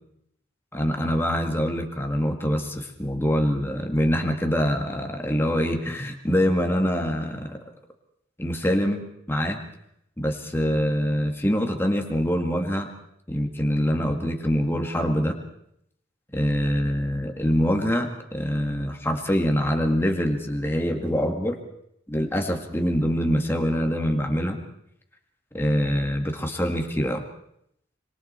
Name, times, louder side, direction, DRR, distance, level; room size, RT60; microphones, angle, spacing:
voice 1, 0.7-7.6 8.4-9.0 9.3-9.6 10.2-12.9 13.3-15.4 16.3-21.6 22.1-24.6 25.5-27.2, equal, 10° left, 3 dB, 2.0 m, -24 dB
25.5 x 23.5 x 4.5 m, 0.75 s
head